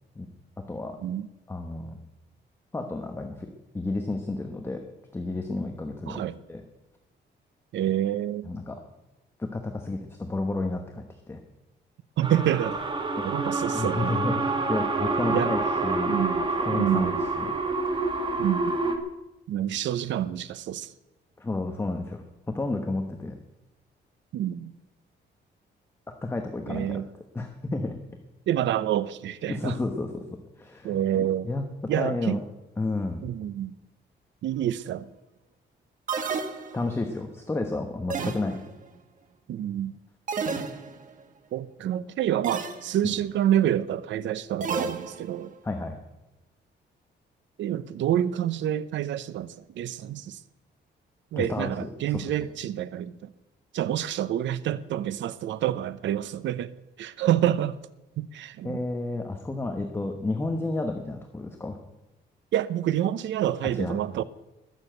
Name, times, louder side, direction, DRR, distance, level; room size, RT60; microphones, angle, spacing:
voice 1, 1.5-2.0 2.7-4.8 5.1-6.6 8.4-8.8 9.4-11.4 13.7-16.2 16.6-17.5 21.4-23.4 26.2-27.0 27.3-27.9 29.5-30.2 30.6-32.4 32.8-33.2 36.7-38.6 43.0-43.1 45.6-46.0 51.3-52.2 58.6-61.8 63.7-64.0, left 2 dB, 15° left, 1.1 m, -31 dB
voice 2, 6.1-6.4 7.7-8.5 12.2-12.8 13.2-14.2 15.3-15.5 16.1-16.4 16.7-17.2 18.4-18.7 19.5-20.9 24.3-24.7 26.7-27.1 28.5-29.7 30.8-31.5 31.9-32.4 33.2-33.8 34.4-35.1 39.5-39.9 41.5-45.5 47.6-50.4 51.3-53.1 53.7-56.7 57.0-57.8 58.2-58.8 62.5-64.2, right 11 dB, 80° right, 0.7 m, -27 dB
sound 1, 12.2-19.0, right 3 dB, 25° right, 1.6 m, -27 dB
sound 2, 36.1-37.1 38.1-38.9 40.3-41.1 42.4-43.0 44.6-45.5, right 5 dB, 45° right, 1.4 m, -32 dB
21.0 x 7.2 x 7.9 m
cardioid pair, 160°, 19 cm